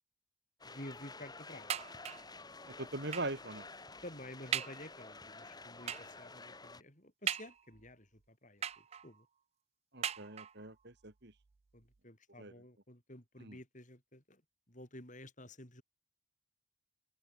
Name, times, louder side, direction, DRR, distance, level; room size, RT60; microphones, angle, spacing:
voice 1, 0.6-1.8 4.0-9.3 11.7-14.4 14.7-15.8, left 1 dB, 35° left, 7.5 m, -51 dB
sound 1, 0.6-6.8, left 3 dB, 20° left, 4.9 m, -51 dB
sound 2, 1.7-2.4 3.1-3.4 4.0-4.1 4.5-4.9 5.9-6.2 7.3-7.9 8.6-9.2 10.0-10.7 11.5-11.6 11.9-12.0, right 9 dB, 30° right, 0.3 m, -39 dB
voice 2, 2.7-3.7 9.9-11.3 12.4-12.5 13.4-13.6, right 2 dB, 50° right, 2.9 m, -42 dB
open air
head